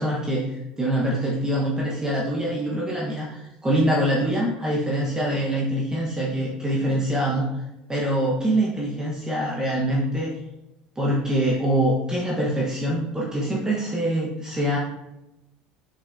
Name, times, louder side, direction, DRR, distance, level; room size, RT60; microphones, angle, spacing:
voice 1, 0.0-7.6 7.9-10.3 11.0-14.8, right 1 dB, 15° right, -4 dB, 1.2 m, -24 dB
6.8 x 5.4 x 2.7 m, 0.91 s
hypercardioid pair, 75°, 4 cm